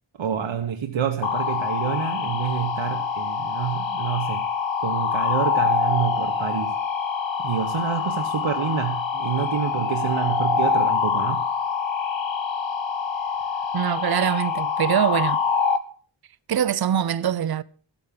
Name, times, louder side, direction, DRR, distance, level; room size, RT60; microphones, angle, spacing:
voice 1, 0.2-4.5 4.8-6.8 7.4-11.5, right 8 dB, 90° right, 1.1 m, -28 dB
sound 1, 1.2-15.8, left 6 dB, 75° left, 1.4 m, -25 dB
voice 2, 13.7-15.4 16.5-17.6, right 9 dB, 55° right, 0.6 m, -23 dB
14.0 x 8.7 x 5.8 m
wide cardioid pair, 130°, 46 cm